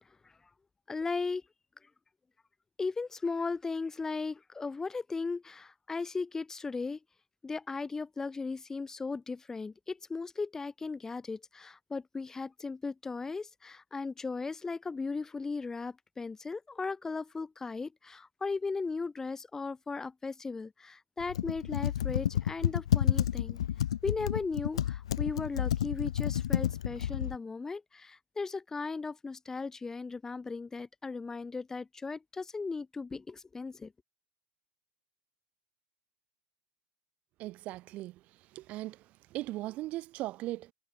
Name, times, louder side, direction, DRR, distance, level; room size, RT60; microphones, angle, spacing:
voice 1, 0.9-1.4 1.8-1.9 2.8-7.0 7.4-23.6 24.0-33.9, left 4 dB, 15° left, 4.1 m, -37 dB
Computer keyboard, 21.2-27.4, left 11 dB, 80° left, 0.9 m, -30 dB
voice 2, 37.4-38.2 38.5-39.0 39.3-40.7, right 17 dB, 50° right, 2.7 m, -38 dB
hypercardioid pair, 90°, 3 cm